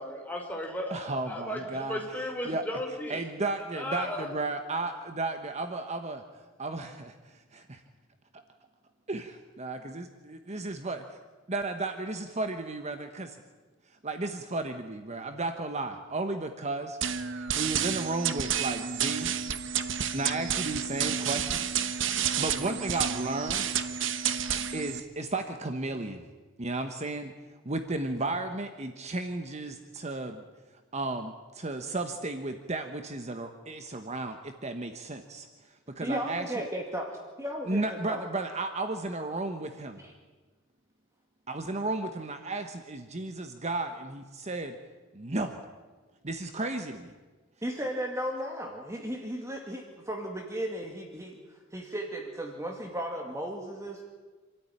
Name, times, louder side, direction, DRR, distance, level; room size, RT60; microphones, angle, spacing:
voice 1, 0.0-3.3 3.7-4.3, left 1 dB, 10° left, 0 dB, 4.5 m, -35 dB
voice 2, 0.9-2.6 3.1-6.2 6.6-7.8 8.3-8.4 9.1-9.2 9.6-11.2 11.5-13.4 13.9-17.0 17.3-19.3 19.9-21.8 22.1-23.7 24.7-26.2 26.6-27.3 27.6-30.4 30.9-36.7 37.7-40.0 41.5-44.8 45.1-45.6 46.2-47.1, right 2 dB, 35° right, 7 dB, 1.2 m, -34 dB
sound 1, 17.0-25.0, right 8 dB, 70° right, 1.2 m, -30 dB
voice 3, 36.0-38.3 40.0-40.1 47.6-54.0, equal, 15° right, 1 dB, 2.1 m, -35 dB
27.0 x 13.5 x 10.0 m, 1.4 s
head